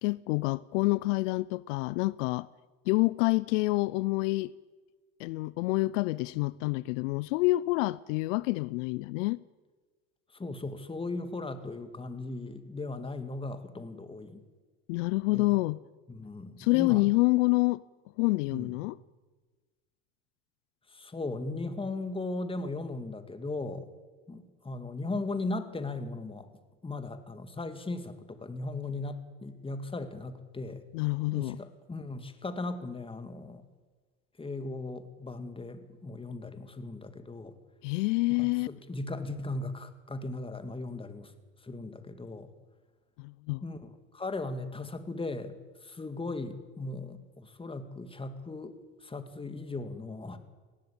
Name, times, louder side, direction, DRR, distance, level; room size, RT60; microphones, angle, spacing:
voice 1, 0.0-2.5 2.9-4.5 5.2-9.4 14.9-15.8 16.6-17.8 18.2-19.0 30.9-31.6 37.8-38.7 43.2-43.7, left 22 dB, 80° left, 0.6 m, -27 dB
voice 2, 10.3-14.4 15.3-15.4 16.1-17.0 18.5-18.7 20.9-23.9 24.3-26.5 26.8-30.8 31.3-33.6 34.4-37.5 38.4-41.3 41.6-42.5 43.6-45.6 45.8-48.7 49.0-50.4, left 2 dB, 15° left, 2.2 m, -37 dB
19.5 x 16.5 x 8.7 m
supercardioid pair, 105°, 37 cm